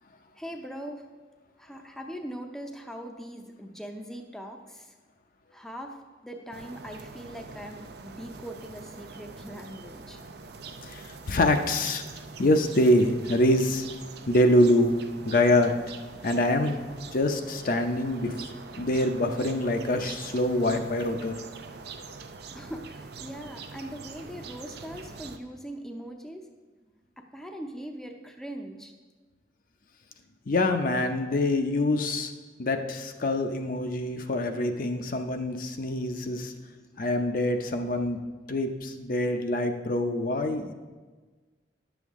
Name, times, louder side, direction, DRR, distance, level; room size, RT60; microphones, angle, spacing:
voice 1, 0.4-1.0 1.6-4.9 5.5-6.0 6.2-10.2 22.5-26.5 27.2-28.9, equal, ahead, 3 dB, 0.6 m, -41 dB
sound 1, 6.5-25.4, right 4 dB, 65° right, 0.6 m, -44 dB
voice 2, 10.8-12.0 12.4-13.8 14.3-15.0 15.2-15.7 16.2-16.8 17.1-18.3 18.8-21.4 30.5-32.3 32.6-36.5 37.0-38.2 38.5-40.7, left 1 dB, 50° left, 5 dB, 0.6 m, -25 dB
10.0 x 7.1 x 3.6 m, 1.3 s
head